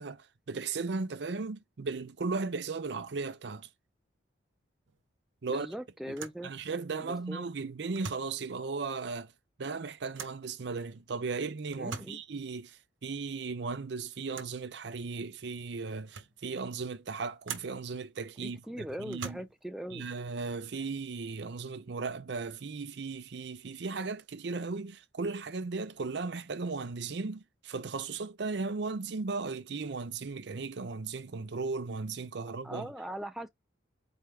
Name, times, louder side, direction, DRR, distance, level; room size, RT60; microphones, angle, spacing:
voice 1, 0.0-3.7 5.4-5.7 6.1-6.2 6.4-9.3 9.6-19.4 19.9-32.9, right 4 dB, 60° right, 0.5 m, -36 dB
sound 1, 4.9-5.1 5.4-5.5 6.1-6.5 7.9-8.4 10.1-10.5 11.7-12.3 14.3-14.6 15.4-15.5 15.9-16.4 17.4-17.8 19.1-19.7, right 6 dB, 80° right, 0.9 m, -43 dB
voice 2, 5.5-6.5 7.0-7.5 11.8-12.2 18.4-20.1 32.6-33.5, equal, ahead, 0.3 m, -40 dB
4.3 x 3.3 x 3.4 m
head